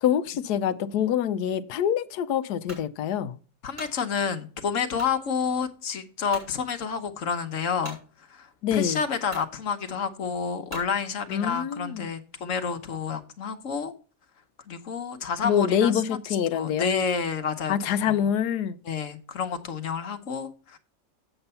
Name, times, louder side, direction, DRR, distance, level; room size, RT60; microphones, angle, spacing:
voice 1, 0.0-3.4 8.6-9.0 11.3-12.1 15.4-16.9 17.7-18.8, left 9 dB, 70° left, 1.2 m, -25 dB
sound 1, 2.7-2.9 3.5-4.0 4.9-5.2 5.7-5.8 6.3-6.5 7.8-8.0 8.8-8.9 9.3-9.5 10.7-10.9, equal, 30° right, 6.0 m, -41 dB
voice 2, 3.6-13.9 14.7-16.0 16.5-17.7 18.1-18.2 18.8-20.8, left 6 dB, 50° left, 1.3 m, -29 dB
8.0 x 7.8 x 5.6 m
omnidirectional pair, 1.9 m